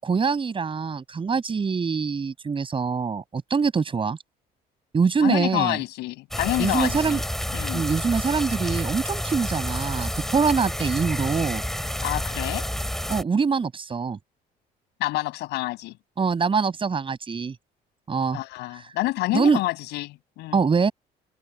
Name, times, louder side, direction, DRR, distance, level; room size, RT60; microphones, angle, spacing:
voice 1, 0.0-4.2 4.9-5.8 6.6-7.2 7.7-11.6 13.1-14.2 16.2-17.6 18.1-18.4 18.7-18.9 19.3-19.6 20.5-20.9, right 5 dB, 30° right, 7.6 m, -24 dB
voice 2, 5.2-7.2 7.5-7.8 12.0-12.6 15.0-16.0 18.3-20.6, left 18 dB, 85° left, 7.3 m, -28 dB
sound 1, 6.3-13.2, equal, ahead, 4.7 m, -29 dB
open air
cardioid pair, 110°, 17 cm